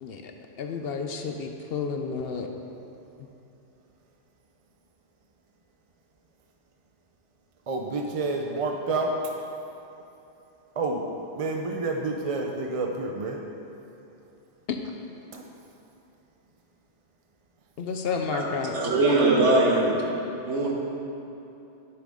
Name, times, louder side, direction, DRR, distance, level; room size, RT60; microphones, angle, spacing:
voice 1, 0.0-0.3 0.6-2.5 14.7-14.8 17.8-18.8, left 5 dB, 65° left, 4 dB, 0.8 m, -31 dB
voice 2, 7.7-9.4 10.8-11.0 11.4-13.4 15.3-15.4, right 3 dB, 45° right, 2 dB, 0.4 m, -29 dB
voice 3, 18.7-20.0 20.5-20.7, right 2 dB, 75° right, -2 dB, 1.5 m, -21 dB
9.6 x 7.7 x 3.6 m, 2.9 s
omnidirectional pair, 1.2 m